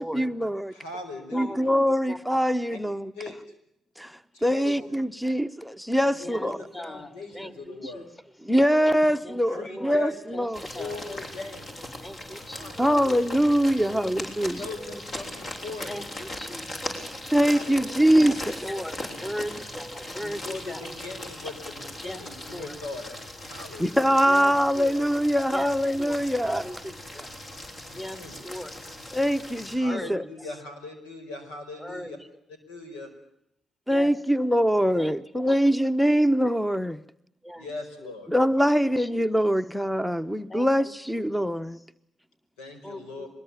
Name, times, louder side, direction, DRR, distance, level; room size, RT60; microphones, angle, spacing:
voice 1, 0.0-0.7 1.3-3.1 4.0-6.6 8.4-10.7 12.8-14.6 17.3-18.8 23.8-26.7 29.1-30.2 33.9-37.0 38.3-41.8, equal, ahead, 1.0 m, -23 dB
voice 2, 0.7-1.5 2.7-2.8 3.1-3.4 4.3-5.0 6.0-8.1 9.5-10.4 10.8-11.7 12.5-13.4 14.5-16.0 17.5-18.2 20.2-24.1 28.1-28.4 29.7-32.2 32.5-33.1 34.9-35.0 37.5-38.3 42.6-43.3, left 3 dB, 90° left, 5.0 m, -40 dB
voice 3, 6.7-7.1 7.3-8.0 9.2-9.4 9.7-10.0 10.3-10.5 10.7-10.9 12.0-12.9 13.8-14.1 15.9-16.0 16.4-17.1 17.9-18.3 18.6-20.4 20.7-20.9 22.0-22.2 22.5-22.8 24.3-24.9 25.5-25.7 26.0-26.2 26.4-27.3 27.9-28.2 28.4-28.7 29.9-30.1 31.8-32.1 33.9-34.1 35.0-35.1 37.4-37.7 40.5-40.7 42.8-43.3, equal, 15° left, 2.8 m, -38 dB
sound 1, 10.5-29.7, left 1 dB, 50° left, 7.3 m, -39 dB
23.5 x 21.5 x 8.5 m
supercardioid pair, 50°, 0 cm